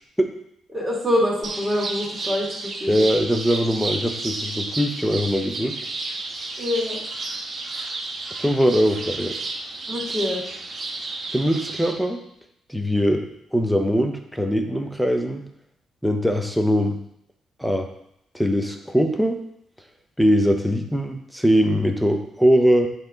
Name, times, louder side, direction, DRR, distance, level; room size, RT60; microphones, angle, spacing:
voice 1, 0.7-3.0 6.6-7.0 7.7-7.9 9.9-10.4, left 1 dB, 15° right, -5 dB, 2.6 m, -25 dB
sound 1, 1.4-11.9, right 3 dB, 40° right, 1.2 m, -32 dB
voice 2, 2.9-5.8 8.4-9.4 11.3-12.2 12.7-15.4 16.0-17.0 17.6-17.9 18.3-19.4 20.2-22.9, equal, ahead, 5 dB, 0.8 m, -21 dB
8.8 x 3.5 x 3.9 m, 0.74 s
cardioid pair, 90°, 0 cm